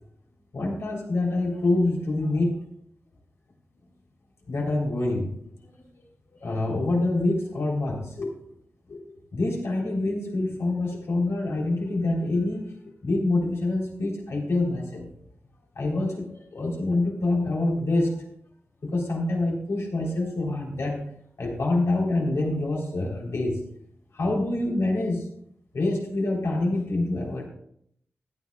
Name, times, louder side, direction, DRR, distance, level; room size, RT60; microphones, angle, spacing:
voice 1, 0.5-2.6 4.5-5.3 6.4-8.3 8.9-9.0 9.3-12.8 13.0-15.1 15.8-18.2 18.8-21.0 21.4-23.6 24.1-25.3 25.7-27.5, left 2 dB, 75° left, -2 dB, 3.7 m, -26 dB
16.0 x 12.5 x 2.4 m, 0.70 s
wide cardioid pair, 105°, 5 cm